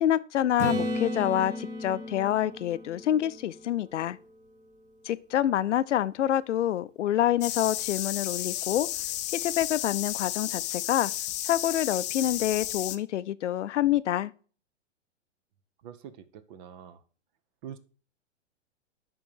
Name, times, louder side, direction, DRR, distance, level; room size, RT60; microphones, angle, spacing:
voice 1, 0.0-4.2 5.0-8.9 9.3-11.1 11.4-14.3, left 12 dB, 75° left, 0.6 m, -27 dB
Acoustic guitar / Strum, 0.6-4.4 9.2-9.3, equal, 20° right, 1.4 m, -35 dB
sound 1, 7.4-13.0, left 14 dB, 25° left, 0.3 m, -33 dB
voice 2, 15.8-17.0 17.6-17.8, right 9 dB, 40° right, 0.8 m, -44 dB
10.5 x 3.8 x 4.5 m
hypercardioid pair, 125°, 36 cm